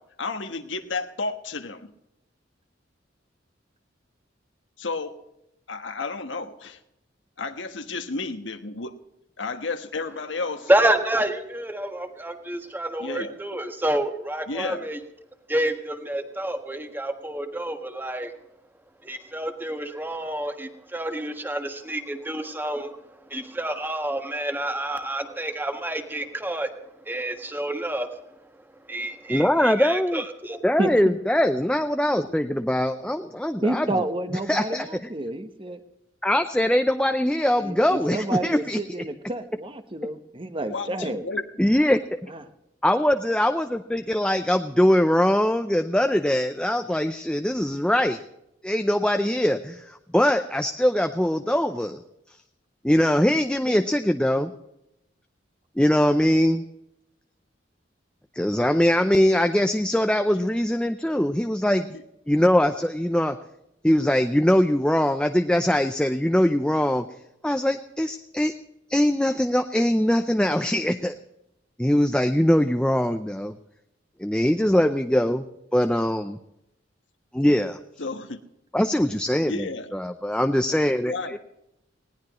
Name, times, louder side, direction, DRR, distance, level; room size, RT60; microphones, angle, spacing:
voice 1, 0.0-1.9 4.8-5.2 5.7-6.8 7.4-8.9 9.4-10.7 13.0-13.4 14.5-14.9 40.7-41.4 60.4-60.5 61.9-62.0 78.0-78.4 79.4-79.9 81.1-81.4, left 3 dB, 80° left, 8 dB, 1.3 m, -32 dB
voice 2, 10.7-15.0 15.5-18.3 19.0-23.0 23.3-28.2 28.8-30.6, right 1 dB, 10° right, 6 dB, 1.5 m, -28 dB
voice 3, 29.3-30.2 30.6-33.9 34.5-34.9 36.2-38.8 41.6-42.3 42.8-48.2 48.6-52.0 52.8-54.5 55.8-56.6 58.3-62.0 62.3-63.4 63.8-67.1 67.4-68.5 68.9-71.2 71.8-73.6 74.2-76.4 77.3-77.8 78.7-81.4, left 1 dB, 5° left, 7 dB, 0.6 m, -22 dB
voice 4, 30.8-31.2 33.6-35.8 37.6-41.3 42.3-42.4 53.7-53.8, right 1 dB, 30° right, 8 dB, 1.2 m, -30 dB
20.0 x 17.5 x 3.1 m, 0.84 s
head